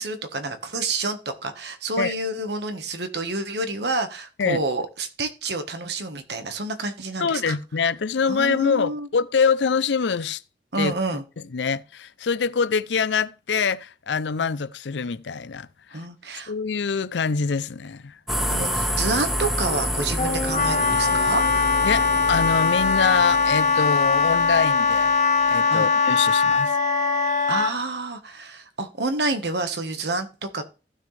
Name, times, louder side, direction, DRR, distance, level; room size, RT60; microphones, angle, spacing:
voice 1, 0.0-7.6 8.3-9.1 10.7-11.2 15.9-16.5 18.4-21.4 25.7-25.9 27.5-30.6, right 2 dB, 70° right, 1.5 m, -28 dB
voice 2, 7.2-10.4 10.8-10.9 11.4-16.0 16.5-18.1 21.8-25.1 25.5-26.8, left 5 dB, 85° left, 0.6 m, -25 dB
sound 1, 18.3-25.1, equal, ahead, 0.8 m, -29 dB
Wind instrument woodwind instrument, 20.2-27.7, left 4 dB, 40° left, 1.5 m, -21 dB
15.0 x 6.3 x 3.4 m
head